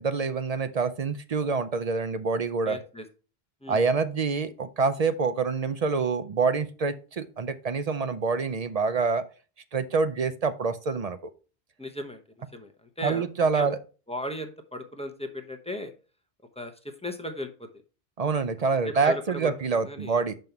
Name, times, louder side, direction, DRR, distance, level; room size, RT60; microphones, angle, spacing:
voice 1, 0.0-2.8 3.7-9.2 9.7-11.2 13.0-13.8 18.2-20.3, right 4 dB, 50° right, 11 dB, 0.5 m, -26 dB
voice 2, 2.7-3.0 3.6-3.8 11.8-12.2 12.5-13.2 13.5-13.7 14.1-15.9 16.6-17.7 18.8-20.2, left 1 dB, 5° left, 4 dB, 0.8 m, -36 dB
5.6 x 5.3 x 4.5 m, 0.35 s
omnidirectional pair, 1.1 m